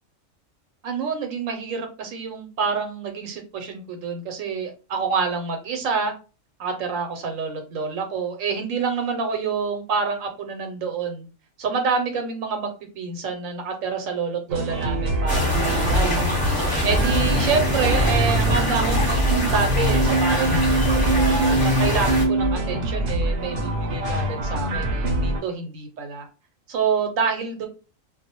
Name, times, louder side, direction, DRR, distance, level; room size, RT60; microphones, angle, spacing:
voice 1, 0.8-6.1 6.6-11.3 11.6-16.2 16.8-26.3 26.7-27.7, right 5 dB, 90° right, 4 dB, 1.0 m, -27 dB
sound 1, 14.5-25.4, right 2 dB, 60° right, 0.7 m, -23 dB
sound 2, 15.3-22.3, left 1 dB, 25° left, 0.9 m, -24 dB
2.3 x 2.0 x 2.8 m, 0.32 s
omnidirectional pair, 1.3 m